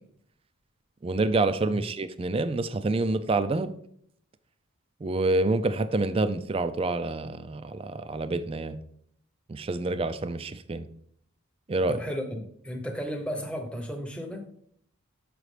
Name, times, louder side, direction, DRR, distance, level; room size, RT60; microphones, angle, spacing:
voice 1, 1.0-3.7 5.0-8.8 9.5-10.9 11.7-12.0, right 2 dB, 25° right, 12 dB, 0.3 m, -27 dB
voice 2, 11.9-14.5, equal, 5° left, 3 dB, 0.7 m, -34 dB
6.4 x 5.9 x 3.2 m, 0.66 s
head